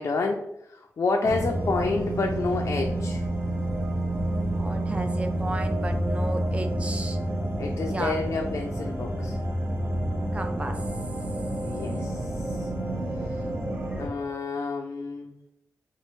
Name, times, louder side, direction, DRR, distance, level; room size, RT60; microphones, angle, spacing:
voice 1, 0.0-3.3 7.6-9.4 11.6-12.7 13.1-13.5 14.0-15.3, left 3 dB, 50° left, 2 dB, 0.4 m, -29 dB
sound 1, 1.2-14.1, right 1 dB, 45° right, 0.8 m, -29 dB
voice 2, 4.5-7.2 7.9-8.2 10.3-10.8 13.7-14.4, right 2 dB, 20° right, 5 dB, 0.5 m, -34 dB
4.2 x 2.4 x 3.1 m, 0.83 s
wide cardioid pair, 115°, 6 cm